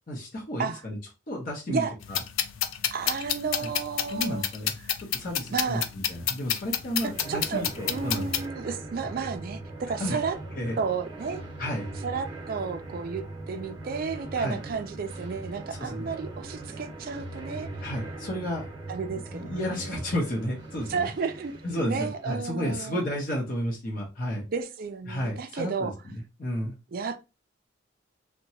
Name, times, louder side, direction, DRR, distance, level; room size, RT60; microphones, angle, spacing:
voice 1, 0.1-1.0 1.3-2.2 3.6-3.7 4.1-8.2 10.0-10.2 10.5-10.8 11.6-11.8 14.4-14.6 15.8-16.1 17.8-18.7 19.1-21.1 21.6-24.4 25.1-26.7, equal, 45° left, 0.7 m, -32 dB
sound 1, 2.0-8.4, left 10 dB, 90° left, 0.4 m, -29 dB
voice 2, 2.9-4.4 4.8-4.9 5.5-5.9 7.0-10.4 10.8-11.4 12.0-17.7 18.9-19.9 20.9-21.5 21.9-23.0 24.5-25.9 26.9-27.2, right 5 dB, 50° right, 0.4 m, -32 dB
sound 2, 6.5-22.3, right 2 dB, 25° right, 0.7 m, -40 dB
2.8 x 2.1 x 2.7 m
head